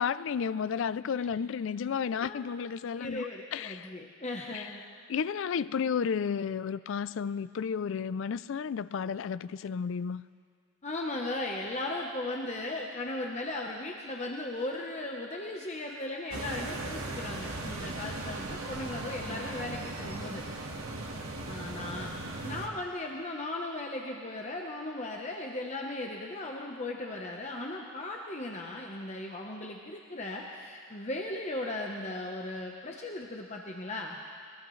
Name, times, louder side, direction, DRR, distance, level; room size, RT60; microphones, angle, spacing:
voice 1, 0.0-3.9 4.5-4.7 5.1-10.2, left 6 dB, 65° left, 17 dB, 0.4 m, -32 dB
voice 2, 2.9-4.8 10.8-20.4 21.5-22.1 22.4-34.2, left 2 dB, 35° left, 0 dB, 0.9 m, -37 dB
sound 1, 16.3-22.7, right 2 dB, 85° right, 1.7 m, -38 dB
21.5 x 21.0 x 3.2 m, 2.1 s
head